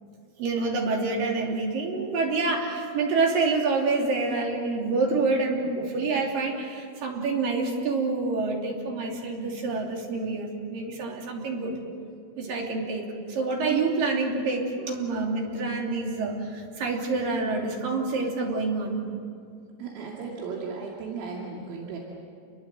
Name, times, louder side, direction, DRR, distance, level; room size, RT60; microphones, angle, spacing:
voice 1, 0.4-11.8 12.4-19.0, right 3 dB, 45° right, 0 dB, 4.3 m, -27 dB
voice 2, 19.8-22.0, right 5 dB, 75° right, -3 dB, 5.0 m, -35 dB
28.0 x 23.0 x 7.9 m, 2.3 s
omnidirectional pair, 6.0 m